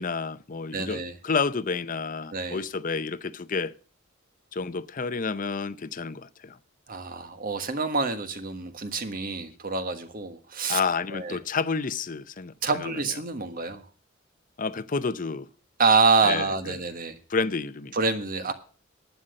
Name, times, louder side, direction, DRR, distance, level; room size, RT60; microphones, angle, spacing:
voice 1, 0.0-3.7 4.5-6.6 10.7-13.0 14.6-15.5 16.2-16.8 17.3-17.9, left 4 dB, 40° left, 0.6 m, -30 dB
voice 2, 0.7-1.1 2.3-2.6 6.9-10.8 11.1-11.4 12.6-13.8 15.8-17.2 17.9-18.5, right 4 dB, 45° right, 1.4 m, -26 dB
11.5 x 9.0 x 6.4 m
head